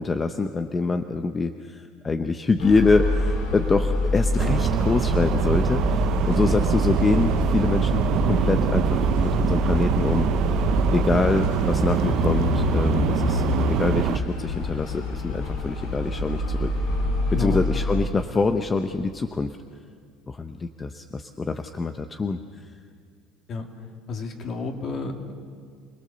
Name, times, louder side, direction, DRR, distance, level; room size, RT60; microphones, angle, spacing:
voice 1, 0.0-10.3 10.9-16.7 17.3-19.6 20.3-22.4, left 3 dB, 25° left, 7 dB, 0.9 m, -25 dB
sound 1, 2.6-18.0, left 3 dB, 85° left, 4.9 m, -26 dB
sound 2, 4.4-14.2, right 11 dB, 60° right, 0.8 m, -24 dB
voice 2, 17.3-17.6 23.5-23.7 24.1-25.3, left 3 dB, 50° left, 3 dB, 2.8 m, -31 dB
28.0 x 18.0 x 6.9 m, 2.1 s
supercardioid pair, 95°, 0 cm